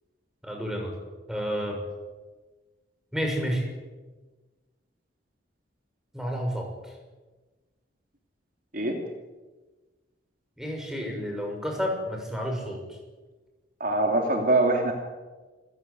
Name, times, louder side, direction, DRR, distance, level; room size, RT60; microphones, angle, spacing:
voice 1, 0.4-0.9 1.3-1.8 3.1-3.6 6.1-6.9 10.6-12.8, equal, 5° right, 1 dB, 6.4 m, -30 dB
voice 2, 13.8-14.9, right 2 dB, 45° right, 2 dB, 2.9 m, -23 dB
28.0 x 16.0 x 9.6 m, 1.3 s
head